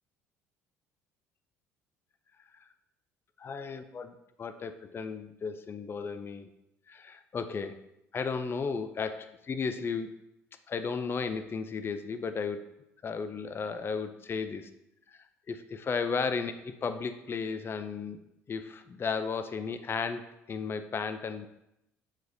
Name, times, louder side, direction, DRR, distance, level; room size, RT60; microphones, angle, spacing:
voice 1, 3.4-6.5 6.9-7.8 8.1-10.1 10.7-12.6 13.0-14.7 15.1-15.2 15.5-18.2 18.5-21.5, left 5 dB, 30° left, 10 dB, 0.5 m, -34 dB
7.7 x 4.7 x 2.7 m, 0.83 s
figure-of-eight pair, 60°, 8 cm